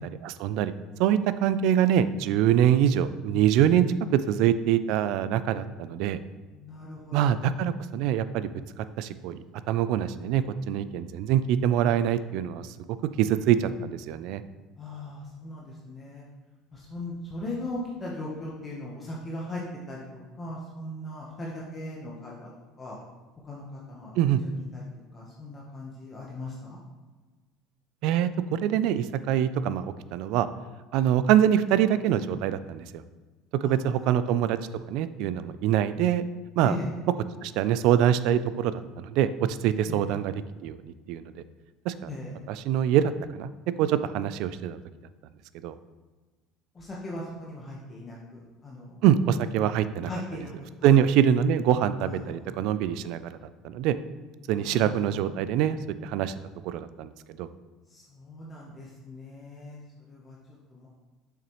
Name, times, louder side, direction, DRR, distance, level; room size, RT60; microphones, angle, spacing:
voice 1, 0.2-0.7 1.0-3.9 4.1-6.2 7.1-8.5 8.8-9.4 9.7-12.7 13.2-14.4 24.2-24.4 28.0-30.5 30.9-33.0 33.6-34.6 34.9-36.2 36.6-36.8 37.4-40.3 40.6-41.4 41.9-42.1 42.5-43.5 43.8-44.8 45.6-45.7 49.0-50.1 50.8-53.4 53.6-54.0 54.5-56.3 56.6-57.1 57.4-57.5, right 10 dB, 65° right, 13 dB, 0.3 m, -24 dB
voice 2, 6.5-7.4 14.8-16.2 16.7-22.5 22.8-23.0 23.4-24.8 25.1-26.8 33.6-34.1 36.6-36.9 39.9-40.1 42.1-42.3 46.7-49.0 50.0-50.9 51.9-52.5 54.5-55.3 57.9-60.4 60.7-60.9, left 2 dB, 25° left, -4 dB, 1.0 m, -39 dB
7.0 x 5.8 x 3.1 m, 1.3 s
cardioid pair, 125°, 0 cm